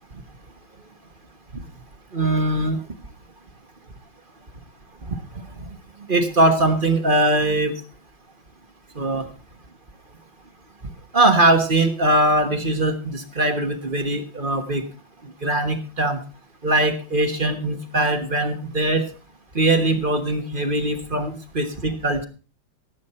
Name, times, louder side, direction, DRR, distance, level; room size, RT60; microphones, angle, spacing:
voice 1, 2.1-2.8 5.1-5.2 6.1-7.7 9.0-9.3 11.1-14.9 15.2-16.2 16.6-19.0 19.5-22.2, right 1 dB, 30° right, 7 dB, 1.2 m, -21 dB
17.0 x 8.4 x 4.3 m, 0.36 s
omnidirectional pair, 2.2 m